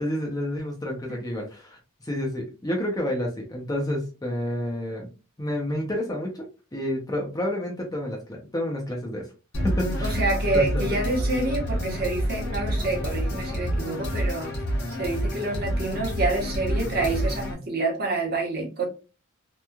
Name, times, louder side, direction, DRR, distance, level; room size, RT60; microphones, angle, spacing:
voice 1, 0.0-5.1 5.4-9.3 9.6-10.3 10.5-11.0 14.7-14.9, left 1 dB, 15° left, 0 dB, 0.6 m, -30 dB
sound 1, 9.5-17.5, equal, 50° left, 1.0 m, -28 dB
voice 2, 10.0-14.5 15.0-18.9, right 2 dB, 45° right, 0 dB, 0.9 m, -27 dB
2.9 x 2.2 x 2.3 m, 0.32 s
head